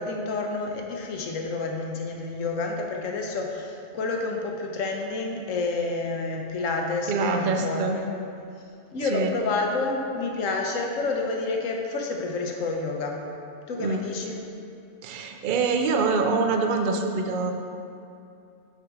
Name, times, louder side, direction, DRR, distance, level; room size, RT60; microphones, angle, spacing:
voice 1, 0.0-8.1 8.9-13.2 13.7-14.4, left 3 dB, 85° left, 1 dB, 1.2 m, -29 dB
voice 2, 7.1-8.0 9.0-9.3 13.8-14.0 15.0-17.5, right 4 dB, 55° right, 4 dB, 0.6 m, -25 dB
6.8 x 4.8 x 4.7 m, 2.5 s
omnidirectional pair, 1.3 m